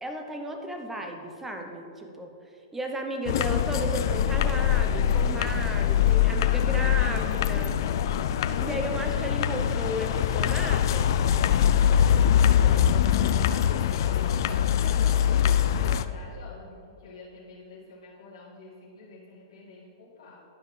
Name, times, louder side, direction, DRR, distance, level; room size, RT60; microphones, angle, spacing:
voice 1, 0.0-2.3 2.7-7.8 8.6-11.1, right 1 dB, 10° right, 4 dB, 0.8 m, -34 dB
sound 1, 3.3-16.1, left 9 dB, 60° left, 0.3 m, -23 dB
voice 2, 12.6-20.4, left 3 dB, 85° left, -8 dB, 1.8 m, -47 dB
12.0 x 4.8 x 3.4 m, 2.6 s
hypercardioid pair, 125°, 2 cm